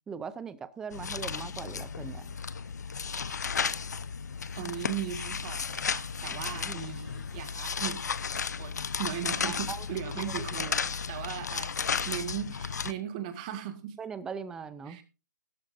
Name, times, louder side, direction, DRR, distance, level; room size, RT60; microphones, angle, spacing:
voice 1, 0.1-2.4 6.5-6.8 9.4-9.9 10.2-10.4 14.0-15.0, right 6 dB, 5° right, 0.5 m, -40 dB
sound 1, 0.9-12.9, left 6 dB, 65° left, 0.9 m, -34 dB
voice 2, 4.6-8.1 8.3-14.0 14.9-15.0, right 10 dB, 25° right, 1.8 m, -38 dB
15.5 x 13.0 x 2.7 m
hypercardioid pair, 155°, 10 cm